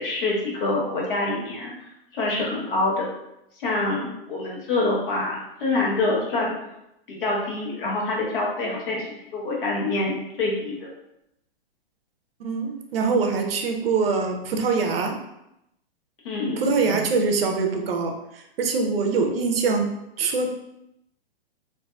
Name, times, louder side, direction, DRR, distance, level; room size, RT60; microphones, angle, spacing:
voice 1, 0.0-3.1 3.6-6.6 7.1-9.0 9.3-10.9 16.2-16.6, left 2 dB, 60° left, -4 dB, 1.0 m, -26 dB
voice 2, 12.4-15.2 16.6-19.9 20.2-20.5, right 4 dB, 70° right, 4 dB, 0.5 m, -24 dB
2.6 x 2.3 x 2.3 m, 0.84 s
hypercardioid pair, 155°, 31 cm